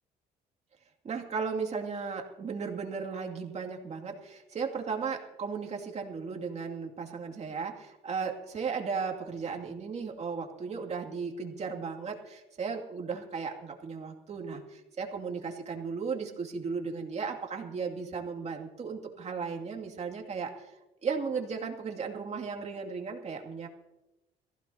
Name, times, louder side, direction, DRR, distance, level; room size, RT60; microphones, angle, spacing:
voice 1, 1.0-20.7 21.0-23.7, right 5 dB, 40° right, 2 dB, 2.4 m, -35 dB
22.0 x 15.5 x 2.8 m, 0.98 s
cardioid pair, 110°, 17 cm